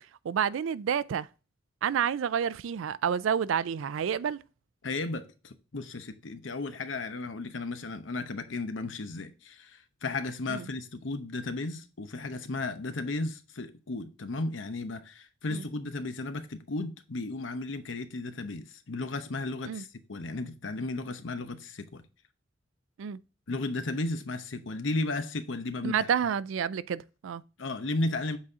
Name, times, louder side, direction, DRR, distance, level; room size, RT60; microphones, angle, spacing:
voice 1, 0.2-1.3 1.8-4.4 10.5-10.7 15.5-15.6 19.7-19.8 23.0-23.2 25.8-27.4, right 8 dB, 85° right, 0.4 m, -29 dB
voice 2, 4.8-22.0 23.5-26.1 27.6-28.4, left 2 dB, 75° left, 0.8 m, -34 dB
7.6 x 4.2 x 3.6 m
head